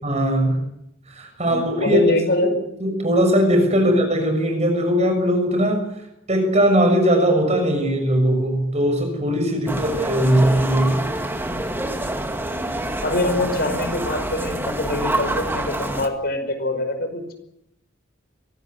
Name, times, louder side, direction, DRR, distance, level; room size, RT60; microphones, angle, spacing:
voice 1, 0.0-0.6 1.1-2.0 2.8-5.9 6.3-11.0, equal, 35° right, 5 dB, 6.6 m, -19 dB
voice 2, 1.4-2.5 3.7-3.8 12.5-12.6 13.0-17.3, left 1 dB, 55° left, 7 dB, 5.3 m, -24 dB
sound 1, 9.7-16.1, right 1 dB, 10° right, 2.2 m, -27 dB
23.5 x 18.0 x 9.6 m, 0.80 s
head